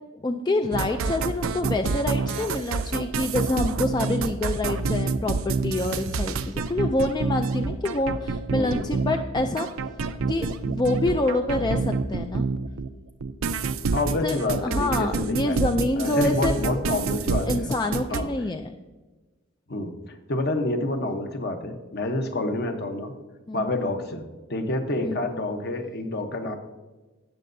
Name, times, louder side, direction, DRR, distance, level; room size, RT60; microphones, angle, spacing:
voice 1, 0.1-9.7 10.3-12.5 14.2-16.5 17.4-18.7 23.5-23.7 25.0-25.2, left 2 dB, 20° left, 6 dB, 0.3 m, -26 dB
sound 1, 0.7-12.9 13.2-18.2, right 4 dB, 80° right, 0.5 m, -27 dB
voice 2, 8.5-9.0 13.9-15.6 15.9-17.7 18.1-18.3 19.7-23.1 23.5-24.2 24.5-26.6, left 2 dB, 50° left, 5 dB, 1.0 m, -28 dB
17.0 x 6.6 x 2.7 m, 1.2 s
head